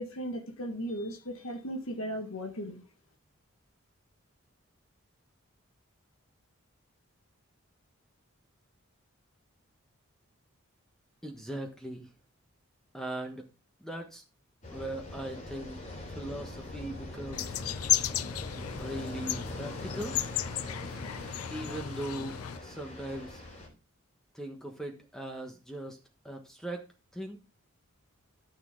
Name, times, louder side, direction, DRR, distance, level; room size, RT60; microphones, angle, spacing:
voice 1, 0.0-2.8, equal, 70° left, 4 dB, 1.7 m, -36 dB
voice 2, 11.2-12.1 12.9-13.4 13.8-14.2 14.7-15.8 16.2-17.6 18.8-20.2 21.5-23.4 24.3-26.0 26.2-26.8 27.1-27.4, right 1 dB, ahead, 3 dB, 1.2 m, -39 dB
sound 1, 14.6-23.7, left 2 dB, 35° left, 3.5 m, -42 dB
sound 2, 17.3-22.6, left 11 dB, 90° left, 0.6 m, -34 dB
13.0 x 6.4 x 3.8 m, 0.32 s
head